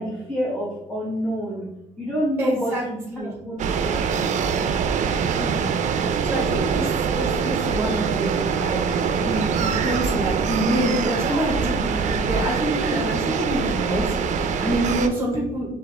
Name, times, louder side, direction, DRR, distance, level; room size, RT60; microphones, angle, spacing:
voice 1, 0.0-1.7 2.0-2.8 3.2-4.2 12.2-12.3, equal, 5° left, -7 dB, 1.2 m, -29 dB
voice 2, 2.4-2.8 3.1-3.3 5.4-5.7 6.2-8.8 9.2-15.7, right 1 dB, 15° right, -3 dB, 1.2 m, -27 dB
sound 1, 3.6-15.1, right 6 dB, 55° right, 0.5 m, -24 dB
4.6 x 3.5 x 3.3 m, 0.88 s
cardioid pair, 105°, 15 cm